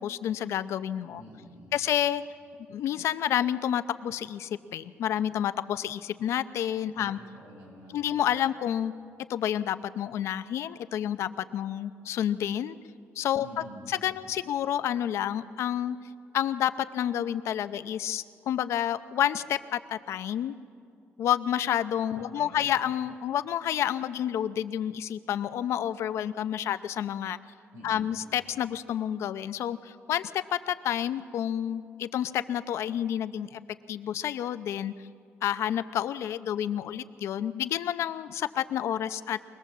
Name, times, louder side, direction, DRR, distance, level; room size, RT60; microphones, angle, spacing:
voice 1, 0.0-1.2 1.7-2.2 2.7-7.2 7.9-8.9 9.3-12.8 13.2-13.5 13.9-16.0 16.3-20.5 21.2-27.4 27.8-33.6 33.9-34.9 35.4-39.4, left 10 dB, 70° left, 12 dB, 0.7 m, -29 dB
voice 2, 1.2-1.8 7.0-8.1 13.4-14.0 22.1-22.7 27.7-28.2, equal, 90° right, -1 dB, 7.6 m, -48 dB
24.0 x 19.0 x 7.4 m, 2.3 s
cardioid pair, 150°, 5 cm